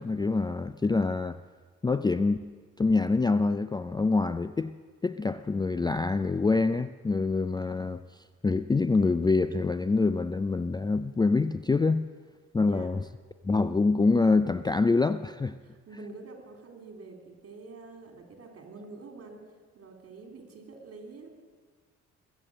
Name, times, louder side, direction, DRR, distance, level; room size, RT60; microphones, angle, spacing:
voice 1, 0.0-1.4 1.8-2.4 2.8-4.7 5.0-8.0 8.4-12.1 12.5-13.0 13.4-15.5, left 3 dB, 15° left, 12 dB, 0.4 m, -25 dB
voice 2, 15.6-21.4, right 3 dB, 50° right, 3 dB, 3.3 m, -47 dB
20.5 x 8.3 x 7.7 m, 1.5 s
cardioid pair, 90°, 30 cm